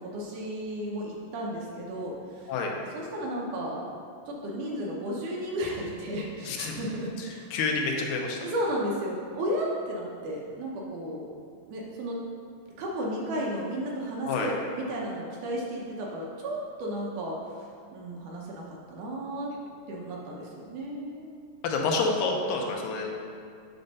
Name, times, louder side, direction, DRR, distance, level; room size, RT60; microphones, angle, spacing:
voice 1, 0.1-2.5 2.9-3.9 4.3-7.5 8.4-11.3 11.7-12.2 12.8-18.6 18.9-19.5 19.9-21.3 21.7-21.9, equal, 70° right, -3 dB, 2.2 m, -33 dB
voice 2, 6.4-6.8 7.2-8.5 14.2-14.5 21.6-23.1, left 3 dB, 80° left, 1 dB, 2.5 m, -28 dB
8.8 x 3.9 x 5.3 m, 2.2 s
omnidirectional pair, 4.0 m